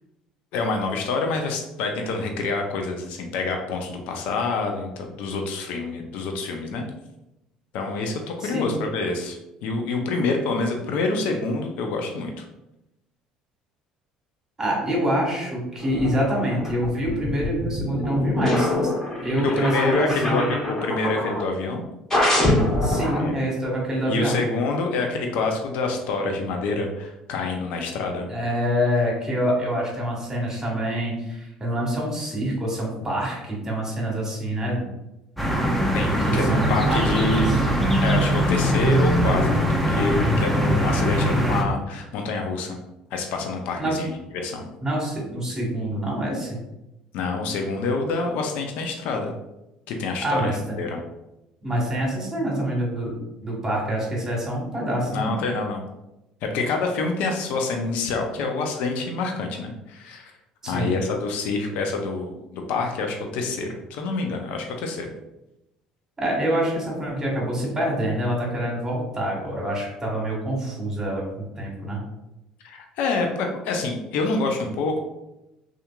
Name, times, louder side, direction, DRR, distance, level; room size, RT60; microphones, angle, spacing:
voice 1, 0.5-6.9 7.7-9.4 9.6-12.3 19.4-21.8 23.2-23.3 24.1-28.2 35.9-37.5 38.0-39.5 39.9-42.8 43.1-44.6 47.1-49.3 49.9-51.0 55.1-55.9 56.4-60.3 60.6-65.1 72.6-75.0, left 3 dB, 70° left, 3 dB, 0.4 m, -27 dB
voice 2, 8.4-8.7 14.6-18.7 19.2-20.5 22.8-24.4 28.3-34.9 36.3-37.6 43.8-44.0 44.8-46.6 50.2-50.8 51.6-53.1 53.4-55.4 60.6-60.9 66.2-72.0, right 1 dB, 20° right, -2 dB, 1.2 m, -26 dB
sound 1, 15.8-21.5 22.1-23.3, left 1 dB, 20° left, 1.2 m, -25 dB
sound 2, 35.4-41.6, right 1 dB, 5° left, 0.6 m, -21 dB
2.8 x 2.4 x 2.2 m, 0.92 s
hypercardioid pair, 70°, 3 cm